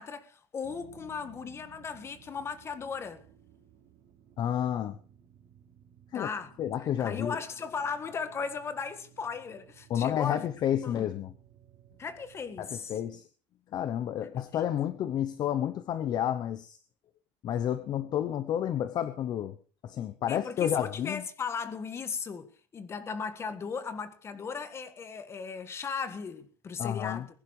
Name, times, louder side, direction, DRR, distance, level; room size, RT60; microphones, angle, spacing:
voice 1, 0.0-3.2 6.1-10.5 10.8-11.1 12.0-13.0 14.2-14.6 20.3-27.3, left 5 dB, 25° left, 1.6 m, -37 dB
sound 1, 0.6-12.7, right 10 dB, 45° right, 3.8 m, -58 dB
voice 2, 4.4-5.0 6.1-6.3 6.6-7.4 9.9-11.3 12.6-13.3 13.7-16.8 17.4-19.6 19.8-21.2 26.8-27.2, left 10 dB, 40° left, 0.9 m, -30 dB
21.0 x 11.0 x 4.9 m
cardioid pair, 180°, 11 cm